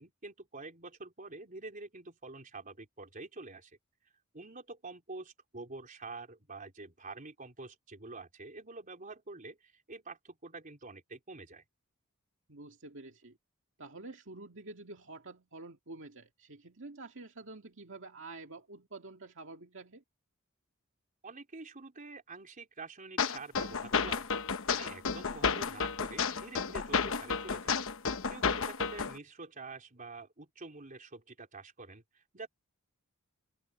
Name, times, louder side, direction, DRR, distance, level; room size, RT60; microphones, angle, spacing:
voice 1, 0.0-3.8 4.3-11.6 21.2-24.3 24.7-27.8 28.3-32.5, right 3 dB, 40° right, 3.8 m, -47 dB
voice 2, 12.5-13.4 13.8-20.0, right 2 dB, 60° right, 2.2 m, -48 dB
sound 1, 23.2-29.2, left 5 dB, 65° left, 1.1 m, -32 dB
head